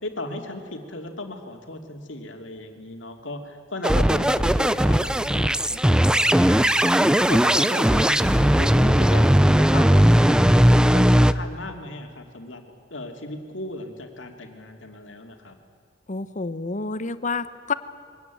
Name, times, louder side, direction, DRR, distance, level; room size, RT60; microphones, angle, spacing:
voice 1, 0.0-9.3 9.6-10.7 10.9-12.6 12.9-15.6, left 1 dB, 85° left, 4 dB, 2.7 m, -36 dB
sound 1, 3.8-11.3, equal, 5° right, 0.5 m, -18 dB
voice 2, 16.1-17.7, left 4 dB, 40° left, 13 dB, 0.9 m, -29 dB
23.5 x 17.5 x 9.3 m, 2.3 s
head